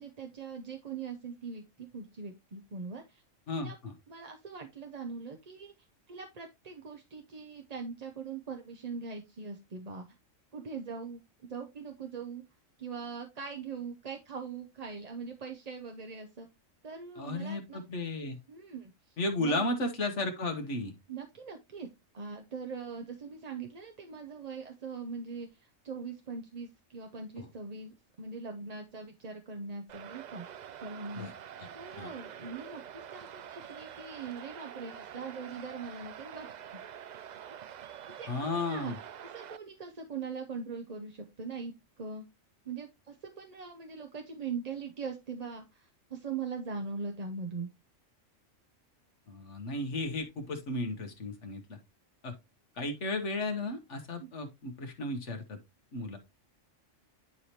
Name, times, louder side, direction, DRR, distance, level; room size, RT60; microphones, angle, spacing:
voice 1, 0.0-3.2 3.6-3.8 4.1-5.7 6.1-10.0 10.5-12.4 12.8-16.5 16.8-17.8 18.5-19.7 21.1-21.9 22.1-30.4 30.8-31.3 31.7-36.8 38.1-38.9 39.2-42.3 42.6-47.7 54.2-54.3, right 5 dB, 35° right, 4 dB, 0.7 m, -41 dB
voice 2, 3.5-3.9 17.2-18.4 19.2-20.9 27.4-27.5 31.1-31.3 32.0-32.1 38.3-39.0 49.3-51.8 52.2-52.3 52.8-55.6 55.9-56.2, left 2 dB, 65° left, 5 dB, 1.5 m, -34 dB
sound 1, 29.9-39.6, right 9 dB, 80° right, 0.4 m, -46 dB
10.0 x 4.9 x 2.8 m, 0.22 s
omnidirectional pair, 1.3 m